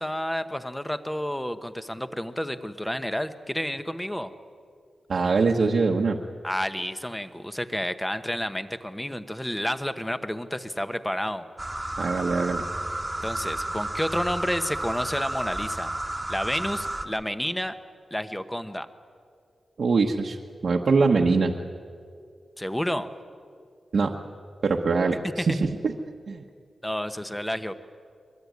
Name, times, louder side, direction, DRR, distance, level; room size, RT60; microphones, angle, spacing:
voice 1, 0.0-4.3 6.4-11.5 13.2-15.9 16.3-17.7 18.1-18.9 22.6-23.1 25.4-25.5 26.8-27.7, equal, 5° left, 10 dB, 1.1 m, -30 dB
voice 2, 5.1-6.2 12.0-12.6 19.8-20.4 20.6-21.5 23.9-24.1 24.6-25.9 26.3-26.4, right 4 dB, 60° right, -1 dB, 1.2 m, -23 dB
sound 1, 11.6-17.1, right 1 dB, 10° right, 1.6 m, -32 dB
23.0 x 22.0 x 9.5 m, 2.3 s
wide cardioid pair, 120°, 0 cm